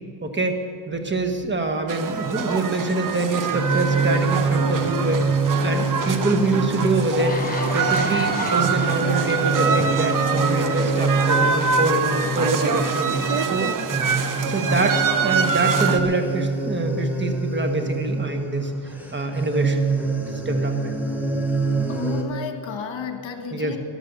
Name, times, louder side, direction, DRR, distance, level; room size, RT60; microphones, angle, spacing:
voice 1, 0.2-0.6 0.9-5.3 5.6-13.7 14.5-19.9 20.2-21.0 23.5-23.8, right 2 dB, 25° right, 5 dB, 1.4 m, -25 dB
sound 1, 1.9-16.0, right 6 dB, 40° right, 0.8 m, -25 dB
sound 2, 3.5-22.2, right 3 dB, 5° right, 1.3 m, -25 dB
sound 3, 6.4-6.5 7.0-9.3 10.0-10.2, left 2 dB, 20° left, 1.2 m, -32 dB
voice 2, 21.9-23.8, left 6 dB, 65° left, 6 dB, 1.6 m, -32 dB
13.0 x 11.0 x 6.9 m, 2.3 s
cardioid pair, 130°, 48 cm